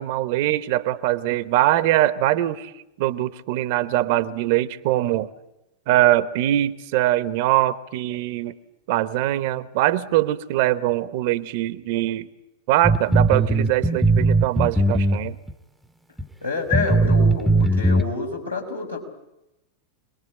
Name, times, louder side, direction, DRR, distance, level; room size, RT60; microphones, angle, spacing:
voice 1, 0.0-2.7 3.0-5.3 5.9-8.6 8.9-12.3 12.7-15.4, right 14 dB, 50° right, 16 dB, 1.0 m, -22 dB
sound 1, 12.8-15.5 16.2-16.3 16.7-18.0, right 2 dB, ahead, 0.9 m, -18 dB
voice 2, 16.4-19.0, left 4 dB, 85° left, -1 dB, 5.0 m, -28 dB
26.0 x 20.5 x 8.8 m, 0.91 s
figure-of-eight pair, 90°, 0 cm